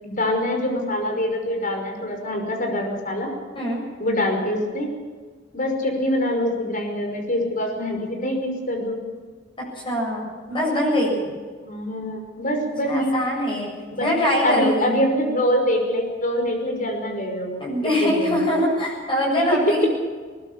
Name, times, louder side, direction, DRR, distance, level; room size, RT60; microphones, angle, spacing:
voice 1, 0.0-3.3 4.0-4.9 5.5-9.0 11.6-13.1 13.9-14.1 14.4-17.6 18.0-18.4 19.3-19.4, left 1 dB, 45° left, 3 dB, 5.6 m, -24 dB
voice 2, 9.8-11.2 12.8-13.7 14.0-15.0 17.6-19.9, left 1 dB, 30° left, -3 dB, 7.7 m, -23 dB
21.0 x 20.0 x 7.5 m, 1.5 s
head